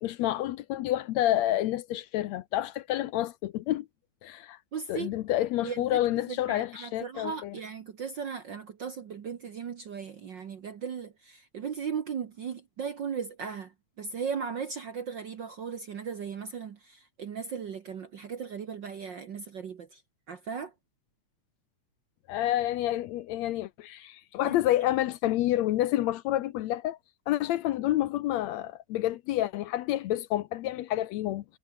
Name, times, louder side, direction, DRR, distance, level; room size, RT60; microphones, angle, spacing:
voice 1, 0.0-3.9 4.2-4.6 4.9-7.6 22.3-27.0 27.3-31.4, left 14 dB, 75° left, 1.8 m, -29 dB
voice 2, 4.7-5.1 5.6-6.0 6.3-13.7 14.0-20.0 20.3-20.7 24.4-24.5, right 6 dB, 55° right, 1.3 m, -37 dB
omnidirectional pair, 3.5 m